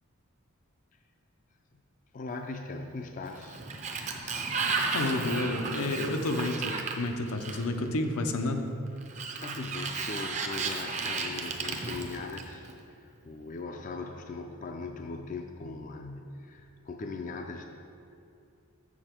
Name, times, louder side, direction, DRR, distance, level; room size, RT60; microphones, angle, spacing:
voice 1, 2.1-3.6 9.4-17.7, left 3 dB, 35° left, 4 dB, 0.3 m, -39 dB
Sliding door, 3.2-7.9 9.0-12.7, right 4 dB, 30° right, 0.5 m, -34 dB
voice 2, 4.9-8.7, left 2 dB, 85° left, 5 dB, 0.7 m, -30 dB
7.1 x 6.9 x 4.4 m, 2.6 s
head